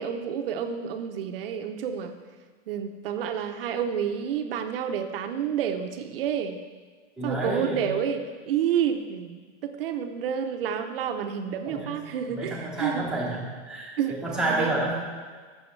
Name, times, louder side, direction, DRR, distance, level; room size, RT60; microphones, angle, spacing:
voice 1, 0.0-2.2 2.7-6.6 7.2-13.1 14.0-14.7, right 8 dB, 50° right, 7 dB, 0.8 m, -29 dB
voice 2, 7.2-7.9 11.7-12.0 12.3-14.9, right 2 dB, ahead, -4 dB, 1.0 m, -30 dB
14.5 x 6.4 x 3.2 m, 1.5 s
supercardioid pair, 165°, 37 cm